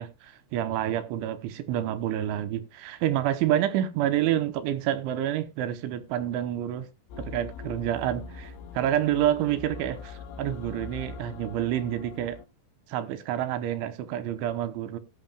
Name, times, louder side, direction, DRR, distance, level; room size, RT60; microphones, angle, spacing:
voice 1, 0.0-6.9 7.2-12.4 12.9-15.0, right 11 dB, 80° right, 3.0 m, -28 dB
sound 1, 7.1-12.5, left 5 dB, 75° left, 3.6 m, -42 dB
17.5 x 9.1 x 2.3 m
omnidirectional pair, 5.9 m